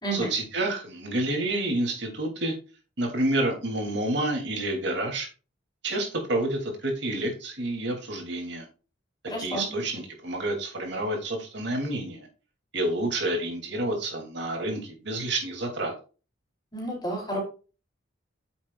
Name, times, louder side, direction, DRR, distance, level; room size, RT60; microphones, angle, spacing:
voice 1, 0.1-2.5 3.0-5.3 5.8-8.7 9.4-12.3 12.7-15.9, right 1 dB, 55° right, 1 dB, 2.9 m, -29 dB
voice 2, 9.3-9.7 16.7-17.4, right 1 dB, 20° left, -1 dB, 4.0 m, -30 dB
9.4 x 7.2 x 2.4 m, 0.33 s
head